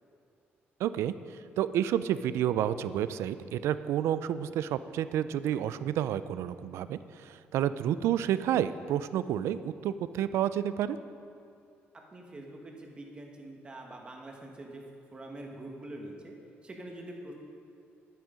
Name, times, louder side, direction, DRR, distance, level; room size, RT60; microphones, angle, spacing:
voice 1, 0.8-1.1 1.6-11.0, right 10 dB, 85° right, 14 dB, 0.4 m, -30 dB
voice 2, 12.1-14.8 15.1-16.3 16.6-17.3, right 1 dB, 20° right, 1 dB, 1.4 m, -44 dB
11.0 x 9.1 x 5.1 m, 2.6 s
cardioid pair, 150°, 4 cm